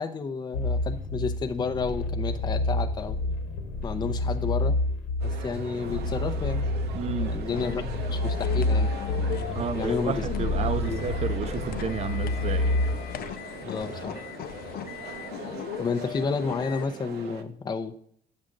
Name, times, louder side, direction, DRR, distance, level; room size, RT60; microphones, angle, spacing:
voice 1, 0.0-3.2 3.8-4.8 5.2-6.6 7.1-8.9 9.7-10.2 10.8-11.0 13.6-14.2 15.8-17.9, left 4 dB, 25° left, 0.6 m, -31 dB
sound 1, 0.5-13.1, left 2 dB, 90° left, 1.1 m, -28 dB
sound 2, 5.2-17.4, right 7 dB, 75° right, 0.9 m, -41 dB
voice 2, 6.9-7.4 9.5-12.7, right 6 dB, 40° right, 0.6 m, -32 dB
sound 3, 7.5-16.9, left 11 dB, 65° left, 0.6 m, -37 dB
8.5 x 6.4 x 3.8 m
cardioid pair, 110°, 17 cm